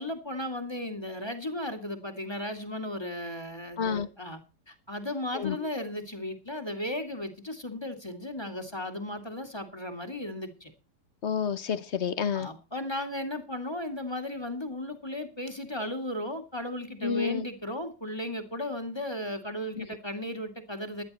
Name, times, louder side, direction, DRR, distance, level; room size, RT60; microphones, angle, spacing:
voice 1, 0.0-4.4 4.7-10.7 12.3-21.0, left 1 dB, 15° left, 2.1 m, -35 dB
voice 2, 3.8-4.1 5.3-5.7 11.2-12.5 17.0-17.5 19.7-19.9, left 7 dB, 50° left, 0.9 m, -30 dB
16.0 x 11.0 x 4.2 m
omnidirectional pair, 1.8 m